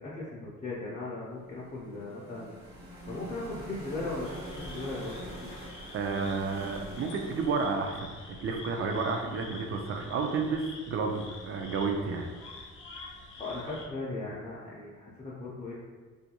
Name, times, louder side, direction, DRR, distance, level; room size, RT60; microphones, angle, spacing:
voice 1, 0.0-2.6 3.1-5.5 13.4-15.7, left 2 dB, 25° left, -7 dB, 0.5 m, -38 dB
sound 1, 1.3-9.3, right 1 dB, 90° right, 1.0 m, -46 dB
sound 2, 4.2-13.9, left 3 dB, 80° left, 0.6 m, -47 dB
voice 2, 5.9-12.3, right 4 dB, 45° right, 4 dB, 0.4 m, -31 dB
2.4 x 2.2 x 2.8 m, 1.4 s
cardioid pair, 90°, 30 cm